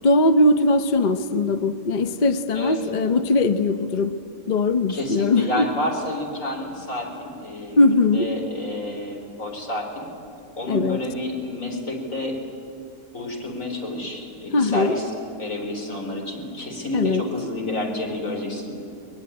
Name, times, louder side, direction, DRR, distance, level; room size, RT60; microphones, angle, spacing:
voice 1, 0.0-4.2 4.5-5.7 7.8-8.3 10.7-11.0 14.5-15.0 16.9-17.2, left 2 dB, 40° left, 10 dB, 0.8 m, -20 dB
voice 2, 4.9-10.1 10.6-12.4 13.1-15.1 15.4-18.8, left 1 dB, 60° left, 1 dB, 4.3 m, -30 dB
22.0 x 20.5 x 9.7 m, 2.6 s
omnidirectional pair, 1.5 m